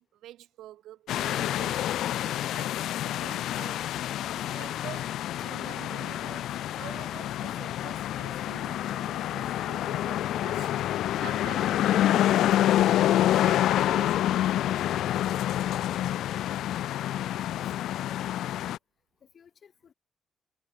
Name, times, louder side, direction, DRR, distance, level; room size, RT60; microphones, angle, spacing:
voice 1, 0.0-4.0 4.5-13.1 13.4-16.0, right 13 dB, 85° right, 1.1 m, -48 dB
sound 1, 1.1-18.8, left 12 dB, 80° left, 0.4 m, -27 dB
voice 2, 17.4-18.4 19.2-19.9, left 7 dB, 50° left, 5.7 m, -56 dB
cardioid pair, 90°, 0 cm